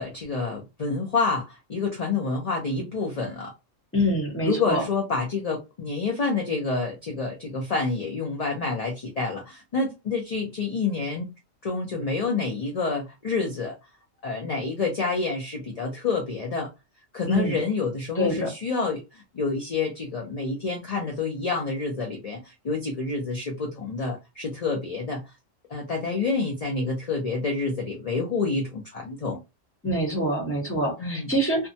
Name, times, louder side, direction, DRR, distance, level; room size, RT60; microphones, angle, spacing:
voice 1, 0.0-3.5 4.4-11.3 11.6-13.7 14.2-16.7 17.1-25.2 25.7-29.4 31.0-31.3, left 4 dB, 40° left, 0.5 m, -28 dB
voice 2, 3.9-4.8 17.3-17.6 18.2-18.5 29.8-31.7, equal, 10° left, 0.9 m, -25 dB
2.7 x 2.2 x 2.7 m
omnidirectional pair, 1.4 m